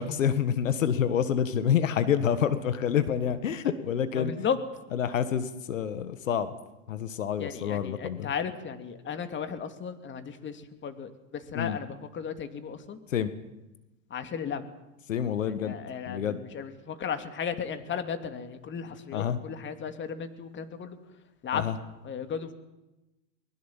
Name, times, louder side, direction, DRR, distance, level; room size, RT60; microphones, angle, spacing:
voice 1, 0.0-4.3 4.9-6.6 6.9-8.3 11.5-11.8 13.1-13.3 15.1-15.8 16.1-16.4 19.1-19.4 21.5-21.7, left 8 dB, 85° left, 12 dB, 1.8 m, -27 dB
voice 2, 4.1-4.6 7.4-13.0 14.1-14.6 15.5-21.0 21.4-21.6 22.0-22.5, left 7 dB, 30° left, 9 dB, 2.7 m, -35 dB
23.0 x 21.0 x 7.4 m, 0.99 s
hypercardioid pair, 100°, 38 cm